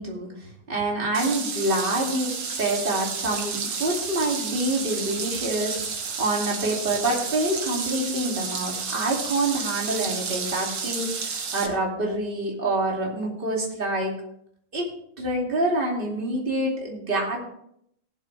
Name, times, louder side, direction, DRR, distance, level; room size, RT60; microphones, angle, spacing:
voice 1, 0.0-14.1 14.7-14.9 15.2-17.4, right 2 dB, 25° right, -2 dB, 2.7 m, -27 dB
sound 1, 1.1-11.7, right 5 dB, 70° right, 2.3 m, -31 dB
19.0 x 7.5 x 3.4 m, 0.72 s
omnidirectional pair, 2.4 m